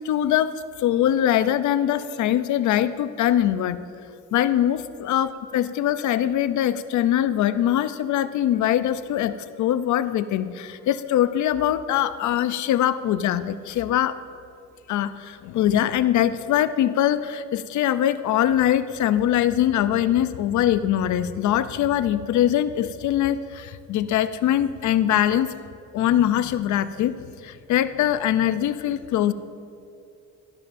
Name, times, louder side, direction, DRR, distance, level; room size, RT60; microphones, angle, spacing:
voice 1, 0.0-0.5 0.8-3.8 4.3-14.2 14.9-25.5 25.9-27.2 27.4-29.3, left 11 dB, 70° left, 13 dB, 0.6 m, -22 dB
16.0 x 12.5 x 2.6 m, 2.5 s
cardioid pair, 90°, 30 cm